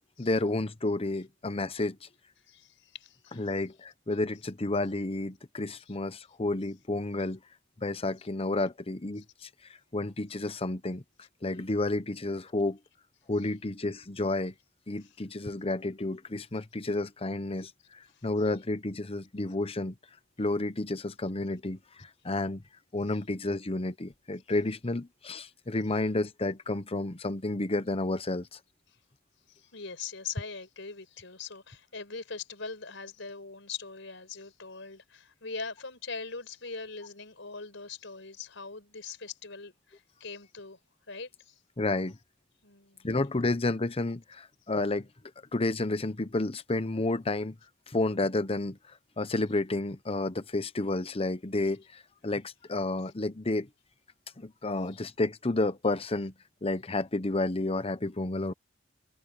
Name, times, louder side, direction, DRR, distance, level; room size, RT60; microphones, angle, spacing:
voice 1, 0.2-2.0 3.4-7.4 7.8-9.5 9.9-11.0 11.4-12.8 13.3-14.5 14.9-19.9 20.4-22.6 22.9-28.6 41.8-42.2 43.0-45.1 45.5-47.6 47.9-48.8 49.2-53.7 54.4-56.3 56.6-58.5, left 2 dB, 30° left, 1.0 m, -31 dB
voice 2, 2.5-3.5 8.2-8.3 15.0-15.1 18.1-18.3 29.5-40.8 41.1-41.6 42.6-43.1 54.9-55.0, left 4 dB, 70° left, 6.6 m, -42 dB
head